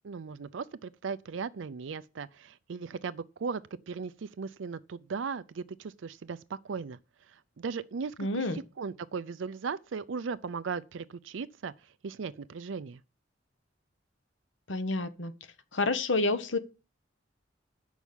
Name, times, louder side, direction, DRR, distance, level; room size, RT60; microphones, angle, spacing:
voice 1, 0.0-3.6 3.9-7.0 7.3-11.7 12.0-13.0, right 5 dB, 75° right, 0.5 m, -37 dB
voice 2, 8.2-8.6 14.7-15.3 15.7-16.6, left 2 dB, 75° left, 1.1 m, -29 dB
8.1 x 6.2 x 7.3 m
head